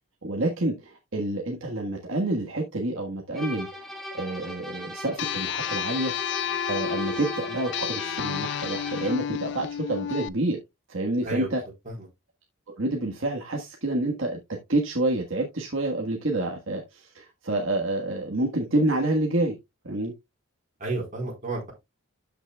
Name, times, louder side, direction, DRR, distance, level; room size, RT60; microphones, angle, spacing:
voice 1, 0.2-10.6 10.9-11.6 12.8-14.4 14.7-19.6 19.8-20.1, right 2 dB, 60° right, 1.4 m, -28 dB
sound 1, 3.3-9.3, left 1 dB, ahead, 1.7 m, -38 dB
sound 2, 5.2-10.3, left 9 dB, 55° left, 0.4 m, -31 dB
voice 2, 11.2-11.6 11.8-12.1 20.8-21.7, right 2 dB, 35° right, 4.1 m, -32 dB
13.0 x 6.0 x 2.3 m
head